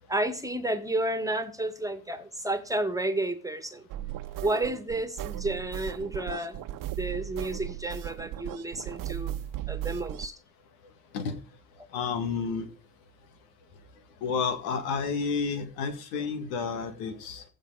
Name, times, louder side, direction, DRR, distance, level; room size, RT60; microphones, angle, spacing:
voice 1, 0.1-3.9 4.4-6.6 7.0-9.3 9.7-10.3, right 1 dB, 5° right, 2.0 m, -31 dB
sound 1, 3.9-10.3, right 12 dB, 45° right, 0.8 m, -36 dB
voice 2, 11.9-12.7 14.2-17.4, left 5 dB, 70° left, 2.1 m, -30 dB
15.0 x 5.4 x 4.9 m
hypercardioid pair, 70°, 44 cm